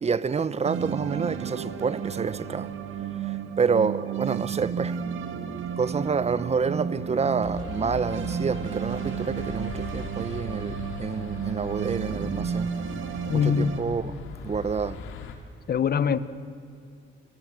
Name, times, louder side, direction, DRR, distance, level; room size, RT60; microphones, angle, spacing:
voice 1, 0.0-2.7 3.2-5.0 5.8-12.7 13.3-14.2 14.4-15.0, right 5 dB, 35° right, 1.0 m, -28 dB
sound 1, 0.6-13.8, right 7 dB, 80° right, 2.1 m, -33 dB
sound 2, 7.4-15.4, left 6 dB, 85° left, 2.8 m, -40 dB
voice 2, 13.3-13.7 15.7-16.2, left 7 dB, 50° left, 1.2 m, -23 dB
30.0 x 24.5 x 7.8 m
cardioid pair, 90°, 20 cm